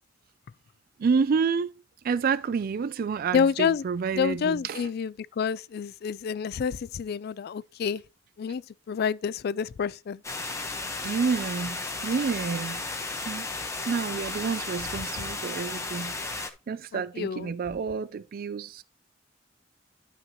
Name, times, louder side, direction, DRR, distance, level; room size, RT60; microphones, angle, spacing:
voice 1, 1.0-1.7 2.0-4.9 11.0-12.8 13.2-13.5 13.9-18.8, right 5 dB, 50° right, 0.4 m, -29 dB
voice 2, 3.3-3.8 4.1-8.0 8.4-10.2 16.9-17.5, left 6 dB, 55° left, 0.3 m, -28 dB
sound 1, 10.2-16.5, left 3 dB, 15° left, 1.1 m, -34 dB
11.5 x 5.8 x 3.0 m
head